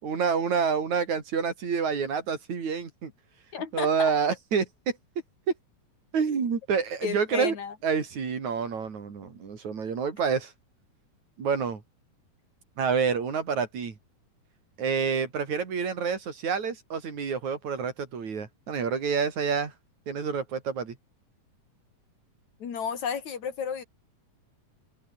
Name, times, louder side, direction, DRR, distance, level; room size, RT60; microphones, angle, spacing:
voice 1, 0.0-3.1 3.7-5.0 6.1-7.6 7.8-10.5 11.4-11.8 12.8-14.0 14.8-19.7 20.1-21.0, right 6 dB, 55° right, 5.0 m, -28 dB
voice 2, 3.5-4.1 7.0-7.7 22.6-23.8, left 7 dB, 55° left, 4.1 m, -32 dB
open air
omnidirectional pair, 4.1 m